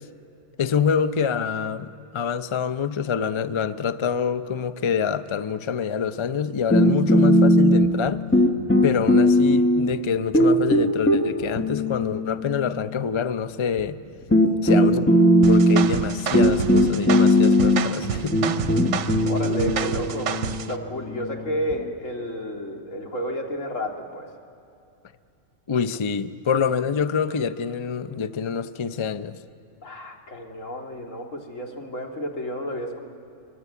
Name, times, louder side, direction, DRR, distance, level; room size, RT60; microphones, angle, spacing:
voice 1, 0.6-8.2 8.8-14.0 14.6-18.4 25.7-29.4, left 6 dB, 40° left, 0.4 m, -26 dB
sound 1, 6.7-8.1 8.3-9.9 10.3-12.8 13.8-13.9 14.3-21.8, equal, 10° left, 1.1 m, -19 dB
sound 2, 15.4-20.7, right 8 dB, 70° right, 1.0 m, -30 dB
voice 2, 19.2-24.3 29.8-33.0, equal, 85° left, 2.5 m, -31 dB
23.5 x 22.0 x 8.3 m
omnidirectional pair, 1.3 m